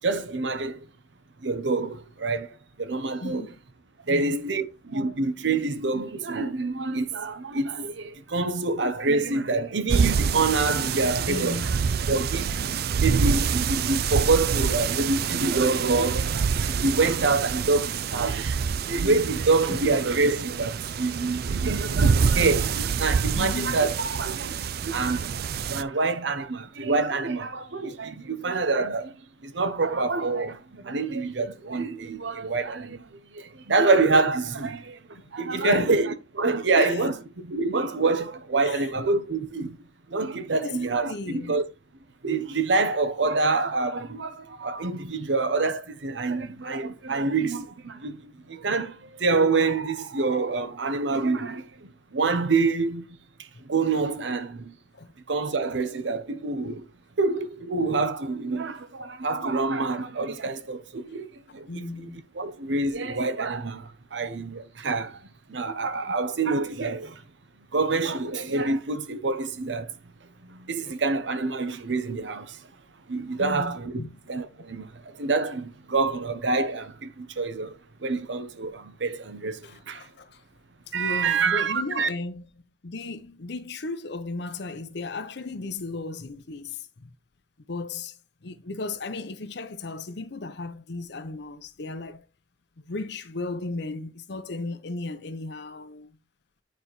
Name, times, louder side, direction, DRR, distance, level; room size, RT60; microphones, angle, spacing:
voice 1, 0.0-0.8 1.4-3.4 4.1-11.7 12.1-25.3 25.7-29.2 29.4-39.8 40.1-41.6 42.2-53.1 53.4-54.8 55.3-56.9 57.2-61.7 62.0-65.2 65.5-67.2 67.7-69.9 70.5-72.7 73.1-73.9 74.3-77.8 78.0-80.1 80.9-82.1, right 3 dB, 80° right, 0.8 m, -26 dB
voice 2, 3.2-3.6 4.1-4.4 11.2-11.8 19.7-19.9 23.3-23.9 35.5-35.9 36.7-37.1 38.6-39.1 40.6-41.6 48.4-48.5 54.9-55.1 61.7-62.2 73.4-74.2 74.5-74.6 79.6-80.4 80.9-82.5 82.8-87.1 87.7-92.3 92.9-96.1, left 3 dB, 65° left, 0.8 m, -35 dB
sound 1, 9.9-25.8, right 6 dB, 60° right, 0.4 m, -26 dB
9.3 x 4.2 x 3.1 m
head